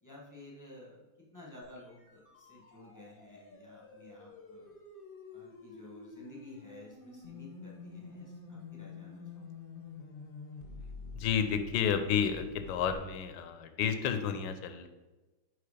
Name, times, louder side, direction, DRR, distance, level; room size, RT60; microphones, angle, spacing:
voice 1, 0.0-1.0 1.3-4.7 5.3-9.5, left 1 dB, 15° left, -4 dB, 0.7 m, -53 dB
sound 1, 1.6-12.9, left 4 dB, 50° left, 0.6 m, -49 dB
voice 2, 11.1-14.9, left 8 dB, 75° left, 8 dB, 1.2 m, -31 dB
4.8 x 4.7 x 4.8 m, 1.2 s
omnidirectional pair, 2.3 m